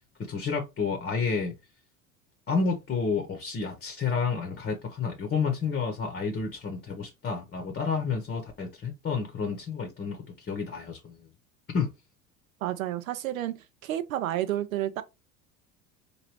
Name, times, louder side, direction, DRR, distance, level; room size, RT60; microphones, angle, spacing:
voice 1, 0.2-1.5 2.5-11.3 11.7-11.9, left 5 dB, 25° left, 0.9 m, -30 dB
voice 2, 12.6-15.0, right 13 dB, 70° right, 0.7 m, -30 dB
4.8 x 2.6 x 3.1 m
figure-of-eight pair, 75°, 43 cm